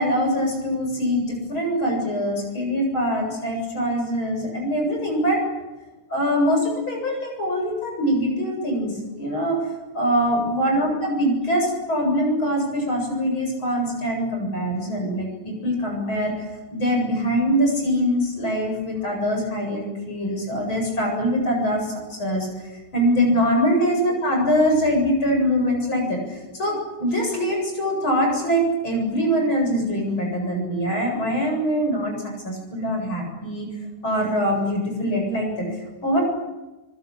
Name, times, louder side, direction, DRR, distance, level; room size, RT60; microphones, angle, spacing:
voice 1, 0.0-5.4 6.1-9.6 9.9-16.5 16.7-21.9 22.2-22.5 22.9-32.1 32.4-33.7 34.0-36.2, equal, 70° left, 1 dB, 9.1 m, -23 dB
25.5 x 25.0 x 8.8 m, 1.1 s
omnidirectional pair, 2.3 m